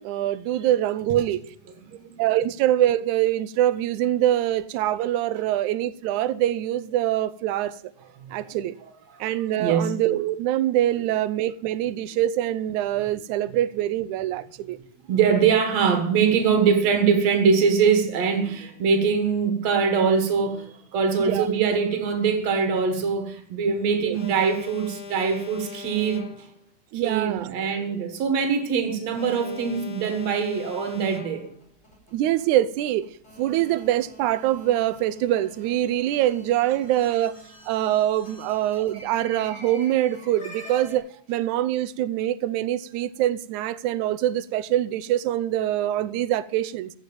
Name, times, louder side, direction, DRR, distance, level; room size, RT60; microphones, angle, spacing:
voice 1, 0.0-1.4 2.2-7.8 8.3-8.8 9.2-14.8 21.2-21.5 23.9-24.2 26.9-27.5 32.1-33.1 33.4-37.4 37.7-46.9, right 13 dB, 90° right, 2.1 m, -24 dB
voice 2, 1.8-2.2 8.2-8.6 9.1-9.2 9.6-10.0 13.0-13.1 15.1-26.2 26.9-31.5, right 6 dB, 65° right, 3.0 m, -23 dB
Alarm, 24.1-26.7 29.1-31.7, left 5 dB, 55° left, 1.1 m, -40 dB
sound 1, 31.4-41.0, right 1 dB, 20° left, 5.9 m, -46 dB
15.0 x 6.4 x 9.0 m
omnidirectional pair, 3.3 m